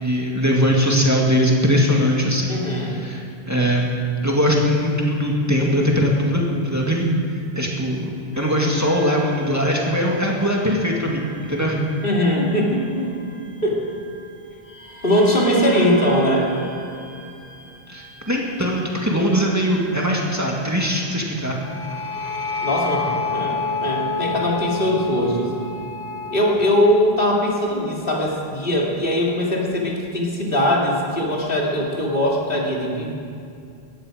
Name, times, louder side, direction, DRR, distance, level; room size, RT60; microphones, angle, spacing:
voice 1, 0.0-2.5 2.9-3.9 4.2-7.1 7.5-8.1 8.4-11.8 17.9-21.6, equal, 15° right, -2 dB, 2.0 m, -20 dB
voice 2, 2.5-3.0 12.0-13.2 13.6-13.8 15.0-16.5 22.6-25.5 26.3-33.2, equal, 60° left, -3 dB, 2.9 m, -21 dB
sound 1, 8.3-14.3 14.7-26.3, left 3 dB, 15° left, 4.3 m, -32 dB
19.0 x 14.5 x 5.0 m, 2.5 s
omnidirectional pair, 1.0 m